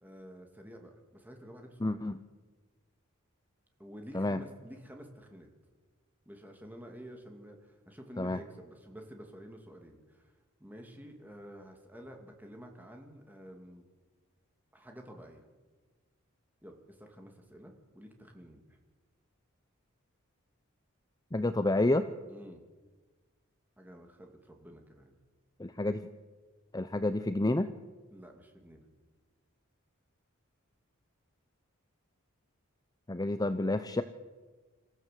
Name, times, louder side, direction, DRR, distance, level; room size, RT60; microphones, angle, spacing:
voice 1, 0.0-2.0 3.8-5.5 6.3-10.3 10.6-13.8 14.7-15.5 16.6-18.6 22.3-22.6 23.8-25.2 28.1-28.9, equal, 10° right, 3 dB, 2.6 m, -50 dB
voice 2, 1.8-2.2 4.1-4.4 8.2-8.4 21.3-22.1 25.6-26.0 26.7-27.7 33.1-34.0, left 2 dB, 20° left, 10 dB, 0.6 m, -29 dB
26.5 x 14.5 x 7.7 m, 1.3 s
head